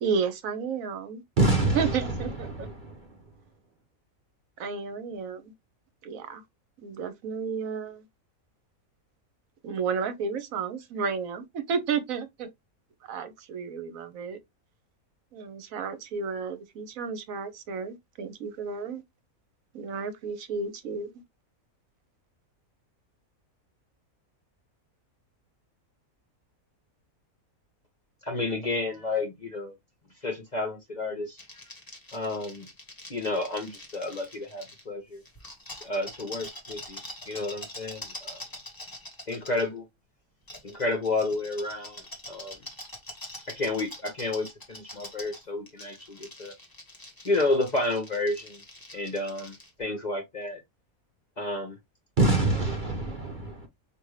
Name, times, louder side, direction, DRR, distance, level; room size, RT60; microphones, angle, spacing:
voice 1, 0.0-1.2 1.7-2.7 4.6-5.5 6.0-6.4 6.8-8.0 9.6-12.5 13.1-14.4 15.3-19.0 19.7-21.1, right 5 dB, 70° right, 1.1 m, -32 dB
voice 2, 1.4-2.0 2.5-3.0 52.2-53.7, right 2 dB, 45° right, 0.7 m, -25 dB
voice 3, 28.2-29.7 30.2-31.4 32.1-32.7 33.1-35.2 35.8-37.0 37.3-38.4 39.3-39.9 40.6-42.0 42.3-42.6 43.5-46.5 47.2-48.6 48.9-50.6 51.4-51.8, left 2 dB, 35° left, 0.8 m, -31 dB
sound 1, 31.4-34.8 35.3-39.7 40.5-49.7, left 1 dB, 15° left, 1.1 m, -44 dB
5.1 x 2.6 x 3.1 m
omnidirectional pair, 1.6 m